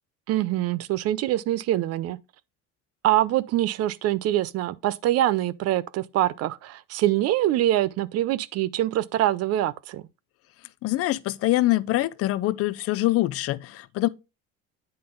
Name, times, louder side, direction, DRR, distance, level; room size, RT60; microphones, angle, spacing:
voice 1, 0.3-2.2 3.0-10.0, right 14 dB, 50° right, 0.5 m, -24 dB
voice 2, 10.8-14.1, left 17 dB, 50° left, 0.5 m, -24 dB
8.6 x 3.8 x 3.7 m
cardioid pair, 115°, 31 cm